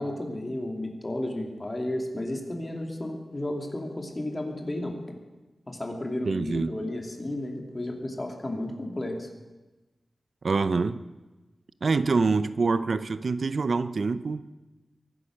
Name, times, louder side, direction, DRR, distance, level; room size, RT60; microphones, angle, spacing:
voice 1, 0.0-5.0 5.7-9.3, left 1 dB, 25° left, 2 dB, 2.6 m, -33 dB
voice 2, 6.3-6.8 10.4-11.0 11.8-14.5, right 4 dB, 60° right, 13 dB, 0.5 m, -25 dB
23.0 x 9.9 x 6.4 m, 1.1 s
wide cardioid pair, 120°, 0 cm